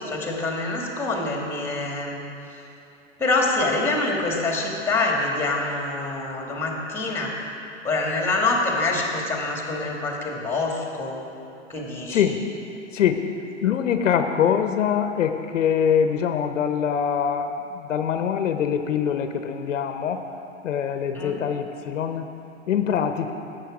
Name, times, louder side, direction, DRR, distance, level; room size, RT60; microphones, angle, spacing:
voice 1, 0.0-2.2 2.5-2.6 3.2-7.4 7.8-11.2 11.7-12.4 21.1-21.4, left 2 dB, 5° left, 0 dB, 1.7 m, -26 dB
voice 2, 13.6-20.2 20.6-22.3 22.7-23.3, left 8 dB, 75° left, 8 dB, 0.8 m, -23 dB
12.0 x 8.0 x 4.9 m, 2.8 s
hypercardioid pair, 120°, 38 cm